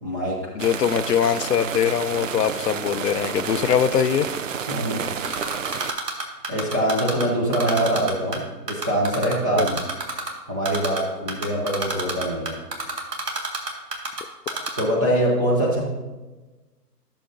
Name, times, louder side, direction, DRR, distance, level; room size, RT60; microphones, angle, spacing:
voice 1, 0.0-0.4 4.7-5.1 6.5-8.4 8.7-9.8 10.5-12.6 14.8-15.8, right 1 dB, 10° right, -3 dB, 0.6 m, -23 dB
voice 2, 0.6-4.3 9.6-9.7 15.0-15.2, left 8 dB, 75° left, 12 dB, 0.6 m, -22 dB
sound 1, 0.6-5.9, right 7 dB, 55° right, 0.5 m, -30 dB
Typing, 5.2-7.2 7.5-8.4 8.7-10.3 10.6-11.0 11.3-14.2 14.5-14.8, right 3 dB, 75° right, 2.0 m, -27 dB
13.0 x 6.7 x 2.7 m, 1.2 s
hypercardioid pair, 150°, 49 cm